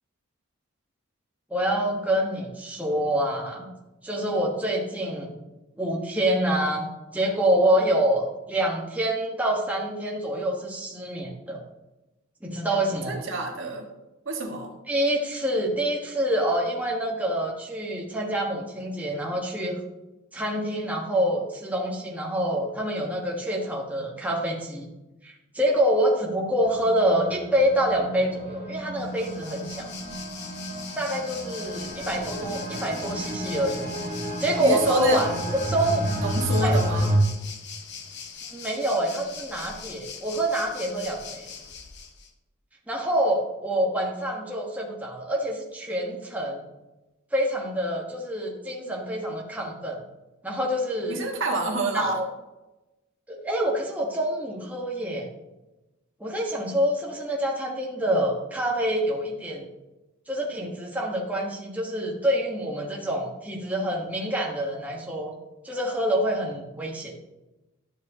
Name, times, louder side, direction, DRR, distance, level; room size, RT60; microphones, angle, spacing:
voice 1, 1.5-3.7 4.0-5.3 5.7-6.9 7.1-11.6 12.4-13.2 14.9-19.8 20.3-24.9 25.2-29.9 31.0-33.8 34.4-35.3 35.7-36.1 36.6-36.8 38.5-41.5 42.9-46.6 47.3-50.0 50.4-51.2 51.9-52.3 53.3-55.3 56.2-59.7 60.3-65.3 65.6-67.1, right 1 dB, 5° right, -2 dB, 1.3 m, -26 dB
voice 2, 13.0-13.8 14.2-14.7 34.6-35.4 36.2-37.1 51.1-52.2, right 2 dB, 60° right, 1 dB, 1.5 m, -27 dB
sound 1, 26.6-37.2, equal, 40° right, 1.8 m, -31 dB
Waves surf, 29.0-42.3, left 6 dB, 55° left, 1.0 m, -41 dB
12.0 x 7.3 x 2.9 m, 1.0 s
head